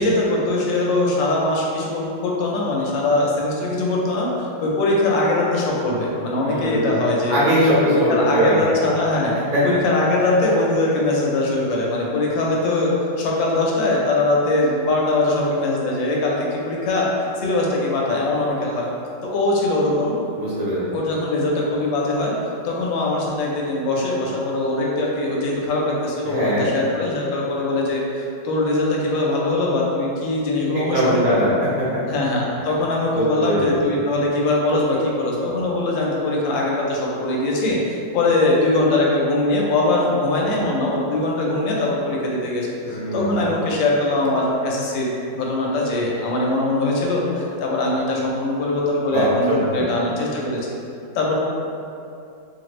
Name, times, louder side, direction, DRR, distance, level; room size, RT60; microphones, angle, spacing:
voice 1, 0.0-7.4 7.9-9.4 9.6-18.9 19.2-20.1 20.9-22.3 22.6-31.2 32.1-50.6 51.1-51.3, left 2 dB, 80° left, -3 dB, 1.3 m, -21 dB
voice 2, 6.4-6.9 7.3-8.7 9.5-9.6 10.2-10.3 20.4-20.9 26.3-26.7 30.7-32.0 32.6-32.7 33.1-33.8 42.8-43.4 49.1-49.8, right 1 dB, 60° right, -10 dB, 1.1 m, -21 dB
2.9 x 2.5 x 3.0 m, 2.6 s
omnidirectional pair, 2.0 m